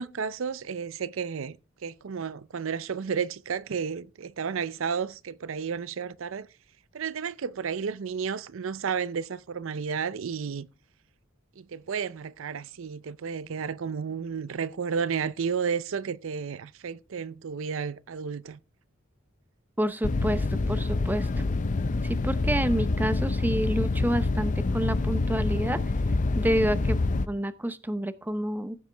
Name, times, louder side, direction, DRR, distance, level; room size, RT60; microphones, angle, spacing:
voice 1, 0.0-1.6 1.8-6.5 6.9-10.7 11.6-18.6, right 6 dB, 65° right, 0.5 m, -32 dB
voice 2, 19.8-21.3 22.0-25.8 26.4-27.0 27.3-28.8, right 1 dB, 10° right, 0.6 m, -28 dB
sound 1, 20.0-27.3, left 3 dB, 35° left, 0.5 m, -27 dB
15.5 x 7.7 x 3.4 m
head